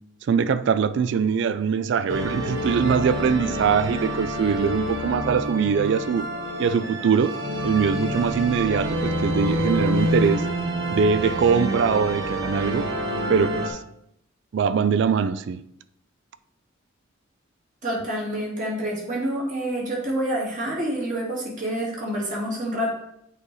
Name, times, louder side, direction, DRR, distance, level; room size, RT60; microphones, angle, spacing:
voice 1, 0.3-6.3 6.6-7.3 7.6-10.5 10.9-12.9 13.3-13.8 14.5-15.6, right 6 dB, 60° right, 0.3 m, -22 dB
sound 1, 2.1-13.7, equal, 85° right, 1.0 m, -27 dB
voice 2, 17.8-22.9, right 1 dB, 40° right, 1.9 m, -27 dB
8.3 x 3.2 x 4.0 m
head